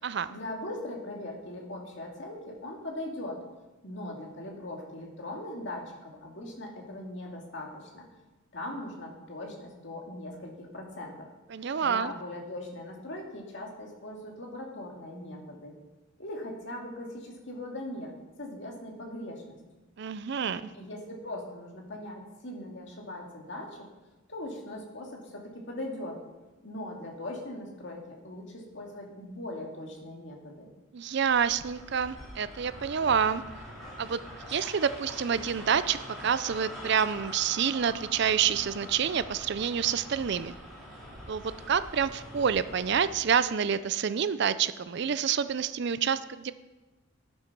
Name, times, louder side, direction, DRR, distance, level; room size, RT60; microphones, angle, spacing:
voice 1, 0.3-3.4 3.8-8.1 8.5-11.3 11.8-15.7 16.2-19.6 20.7-23.9 24.3-26.2 26.6-30.7, left 1 dB, 55° left, 0 dB, 2.2 m, -40 dB
voice 2, 11.5-12.1 20.0-20.6 30.9-33.4 34.0-34.2 34.5-40.5 41.3-46.5, right 7 dB, 50° right, 14 dB, 0.4 m, -28 dB
sound 1, 31.2-43.3, equal, ahead, 3.3 m, -44 dB
11.0 x 9.0 x 5.9 m, 1.1 s
head